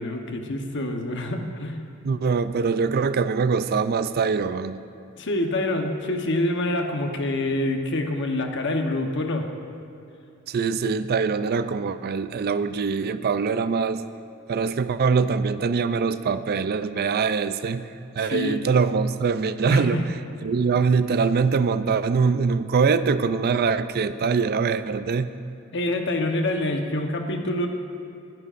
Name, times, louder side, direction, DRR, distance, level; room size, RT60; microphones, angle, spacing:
voice 1, 0.0-1.8 5.2-9.5 18.2-18.6 19.7-20.1 25.7-27.7, left 1 dB, 55° left, 4 dB, 1.0 m, -26 dB
voice 2, 2.0-4.8 10.5-14.0 14.5-17.9 18.2-20.0 20.4-25.3, right 5 dB, 45° right, 13 dB, 0.4 m, -23 dB
22.0 x 10.5 x 2.5 m, 2.7 s
head